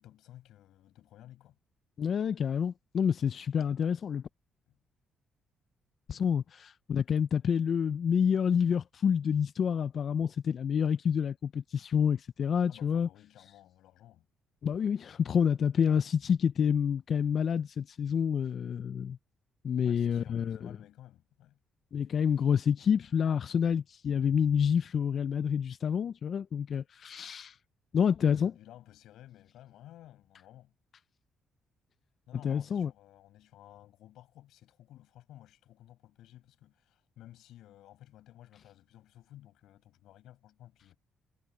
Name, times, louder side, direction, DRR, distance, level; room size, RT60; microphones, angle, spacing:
voice 1, 0.0-1.6 4.7-4.8 12.7-14.3 19.8-21.6 28.2-30.7 32.3-41.0, left 13 dB, 85° left, 7.8 m, -55 dB
voice 2, 2.0-4.2 6.1-13.1 14.6-19.2 19.6-20.6 21.9-27.6 27.9-28.5 32.4-32.9, left 7 dB, 55° left, 0.5 m, -28 dB
cardioid pair, 90°, 0 cm